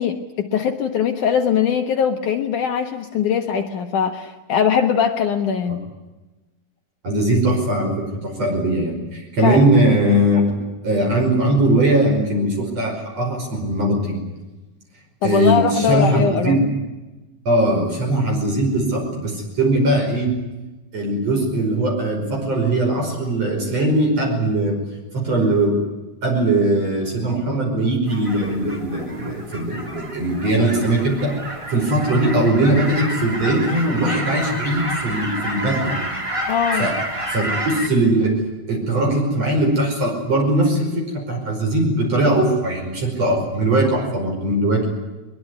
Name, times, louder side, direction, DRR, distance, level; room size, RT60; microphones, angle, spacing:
voice 1, 0.0-5.8 9.4-9.7 15.2-16.6 36.5-36.9, left 7 dB, 65° left, 4 dB, 2.6 m, -21 dB
voice 2, 7.0-10.4 10.8-14.2 15.2-16.7 17.5-20.4 20.9-24.8 25.1-25.8 26.2-31.3 31.7-36.0 36.7-36.9 37.3-38.4 38.7-44.9, right 1 dB, 45° right, 1 dB, 6.3 m, -20 dB
sound 1, 28.1-37.9, right 1 dB, 10° right, 2.1 m, -29 dB
22.5 x 22.0 x 9.9 m, 1.1 s
omnidirectional pair, 4.2 m